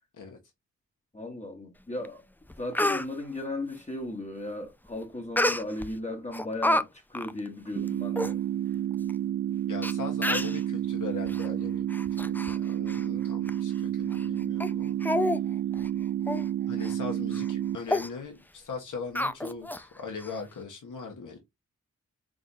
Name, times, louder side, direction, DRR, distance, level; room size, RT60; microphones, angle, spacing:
voice 1, 1.1-2.2 2.6-8.4 12.9-13.3 15.7-15.9, left 2 dB, 20° left, 1.2 m, -36 dB
Speech, 2.0-2.1 2.5-3.1 5.4-5.9 6.3-6.8 7.1-7.3 7.9-8.0 8.2-8.3 9.1-9.2 9.8-9.9 10.2-10.6 11.3-11.5 11.9-12.6 12.9-13.0 13.5-13.6 14.1-14.3 14.6-14.7 15.0-15.4 15.7-15.9 16.3-16.5 16.8-16.9 17.3-17.5 17.9-18.1 19.2-19.8 20.2-20.3, left 1 dB, 5° left, 0.4 m, -28 dB
sound 1, 7.8-17.8, right 11 dB, 55° right, 0.4 m, -30 dB
voice 2, 9.7-11.9 12.2-15.0 16.7-21.4, left 5 dB, 70° left, 1.3 m, -39 dB
3.8 x 3.8 x 2.6 m
cardioid pair, 55°, 32 cm